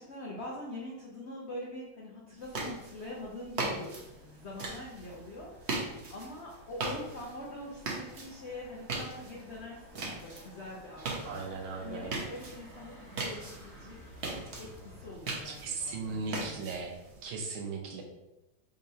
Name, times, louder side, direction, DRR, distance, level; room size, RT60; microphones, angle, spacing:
voice 1, 0.0-11.4 11.8-14.0 14.4-16.7, left 1 dB, 75° left, -3 dB, 0.6 m, -44 dB
sound 1, 2.4-17.2, right 2 dB, 45° right, 0.9 m, -40 dB
Motor vehicle (road), 3.9-15.2, equal, ahead, 0.9 m, -55 dB
voice 2, 11.2-12.2 15.4-17.0 17.2-18.0, right 4 dB, 80° right, 2 dB, 1.6 m, -37 dB
4.7 x 4.1 x 2.8 m, 0.95 s
omnidirectional pair, 2.2 m